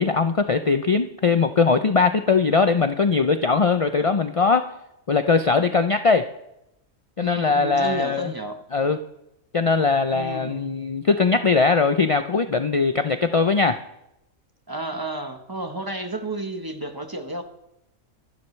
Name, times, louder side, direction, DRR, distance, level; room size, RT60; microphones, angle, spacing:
voice 1, 0.0-4.7 5.1-6.3 7.2-8.3 8.7-9.0 9.5-13.8, left 4 dB, 50° left, 8 dB, 0.4 m, -20 dB
voice 2, 7.2-8.6 10.1-10.7 14.7-17.4, right 2 dB, 15° right, 6 dB, 1.1 m, -31 dB
25.0 x 11.5 x 3.3 m, 0.85 s
omnidirectional pair, 1.4 m